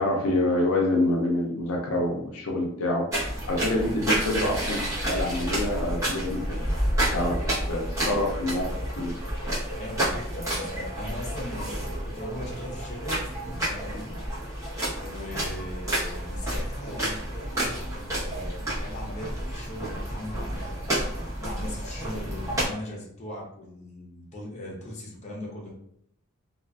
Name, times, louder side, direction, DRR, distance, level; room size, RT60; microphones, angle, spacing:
voice 1, 0.0-3.1 3.5-6.6 7.1-7.4 7.7-8.7 9.0-9.1, left 1 dB, 75° left, 0 dB, 0.5 m, -26 dB
sound 1, 3.1-22.7, right 1 dB, 15° right, 0.8 m, -30 dB
voice 2, 7.3-7.6 9.8-14.2 15.0-20.9 21.4-25.7, left 1 dB, 30° left, -3 dB, 0.6 m, -39 dB
2.3 x 2.3 x 2.2 m, 0.72 s
head